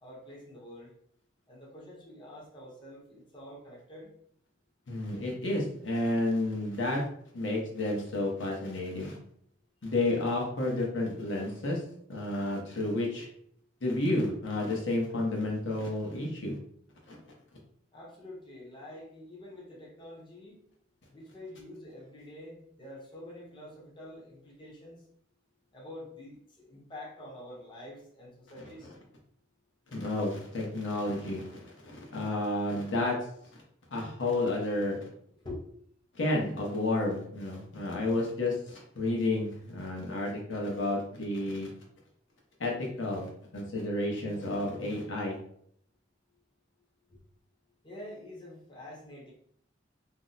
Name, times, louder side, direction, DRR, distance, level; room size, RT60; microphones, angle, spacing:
voice 1, 0.0-0.9 1.5-4.1 17.9-20.6 21.1-25.0 25.7-28.9 35.4-35.6 47.1-47.2 47.8-49.3, left 1 dB, 25° left, -4 dB, 0.8 m, -46 dB
voice 2, 4.9-7.0 7.3-9.2 9.8-11.8 12.1-13.3 13.8-16.6 17.1-17.2 28.8-28.9 29.9-33.2 33.9-35.0 36.1-41.7 42.6-45.4, left 2 dB, 85° left, -2 dB, 0.9 m, -31 dB
2.7 x 2.1 x 3.8 m, 0.67 s
head